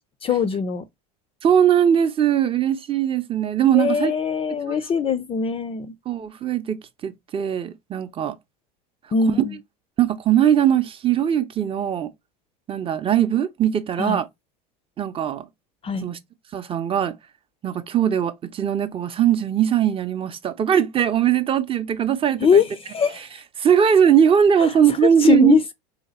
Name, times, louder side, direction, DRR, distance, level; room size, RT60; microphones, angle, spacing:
voice 1, 0.2-0.8 3.7-5.9 9.1-9.6 14.0-14.2 15.8-16.1 22.4-23.3 24.6-25.7, left 6 dB, 25° left, 0.4 m, -22 dB
voice 2, 1.4-4.1 6.1-8.4 9.4-9.5 10.0-12.1 12.7-14.3 15.0-15.5 15.9-16.2 16.5-17.2 17.6-22.6 23.6-25.6, right 9 dB, 25° right, 0.6 m, -20 dB
3.3 x 2.8 x 4.2 m
hypercardioid pair, 90°, 20 cm